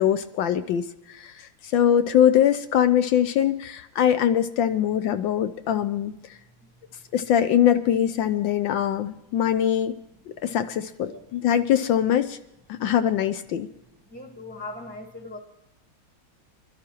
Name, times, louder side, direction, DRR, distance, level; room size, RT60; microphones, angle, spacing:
voice 1, 0.0-6.1 7.1-9.9 10.4-12.4 12.8-13.7, left 10 dB, 75° left, 11 dB, 1.3 m, -22 dB
voice 2, 14.1-15.4, left 2 dB, 15° right, 2 dB, 1.1 m, -39 dB
25.0 x 12.0 x 3.0 m, 0.85 s
omnidirectional pair, 2.2 m